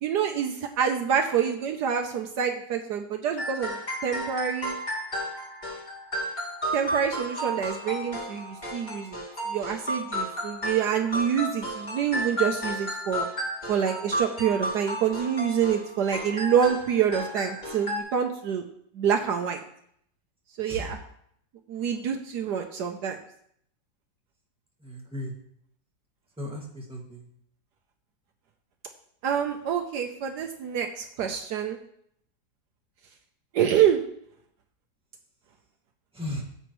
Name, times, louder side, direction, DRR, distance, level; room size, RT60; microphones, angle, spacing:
voice 1, 0.0-3.8 4.0-4.8 6.7-9.2 9.5-13.3 13.7-18.6 18.9-19.6 20.6-21.0 21.7-23.2 29.2-31.8 33.5-34.0, right 8 dB, 70° right, 4 dB, 1.3 m, -26 dB
sound 1, 3.4-18.0, equal, 25° left, 2.2 m, -33 dB
voice 2, 24.8-25.3 26.4-27.3 36.1-36.4, left 1 dB, 5° right, -2 dB, 1.9 m, -35 dB
14.5 x 7.9 x 3.1 m, 0.70 s
omnidirectional pair, 1.9 m